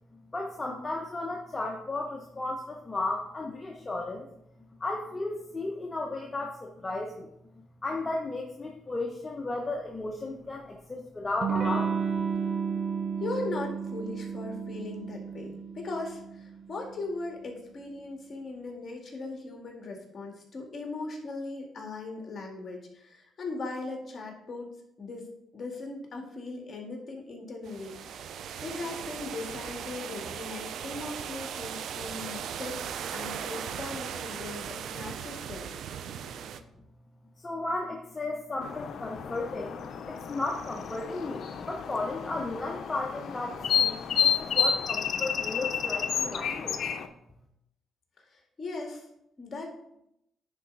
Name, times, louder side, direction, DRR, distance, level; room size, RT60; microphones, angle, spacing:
voice 1, 0.3-4.3 4.8-11.9 37.4-46.8, left 2 dB, 25° left, 0 dB, 0.9 m, -34 dB
Electric guitar / Strum, 11.4-16.8, right 6 dB, 55° right, 1.2 m, -32 dB
voice 2, 13.2-24.7 25.0-25.3 25.5-32.9 33.1-35.7 48.2-49.1 49.4-49.7, left 3 dB, 40° left, 1 dB, 2.0 m, -39 dB
sound 1, 27.6-36.6, right 8 dB, 70° right, 0.5 m, -38 dB
sound 2, 38.6-47.1, left 7 dB, 65° left, 0.6 m, -30 dB
9.9 x 4.5 x 3.9 m, 0.80 s
cardioid pair, 90°, 0 cm